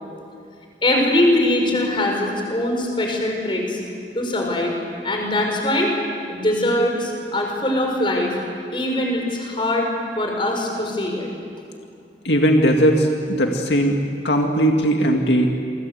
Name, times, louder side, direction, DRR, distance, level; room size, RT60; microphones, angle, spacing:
voice 1, 0.8-3.8 4.1-4.7 5.0-5.9 6.3-8.4 8.7-9.9 10.2-11.3, left 1 dB, 30° left, 1 dB, 5.4 m, -22 dB
voice 2, 12.2-14.0 14.2-15.5, equal, 80° left, 2 dB, 2.2 m, -18 dB
28.5 x 24.5 x 8.1 m, 2.5 s
head